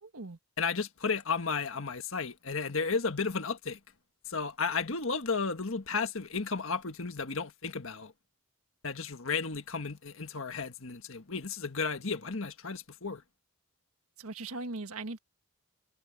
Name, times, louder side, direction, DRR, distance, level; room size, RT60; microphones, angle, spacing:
voice 1, 0.0-0.4 14.2-15.2, right 3 dB, 85° right, 1.7 m, -39 dB
voice 2, 0.6-3.8 4.3-8.1 8.8-13.2, left 5 dB, 65° left, 1.5 m, -33 dB
head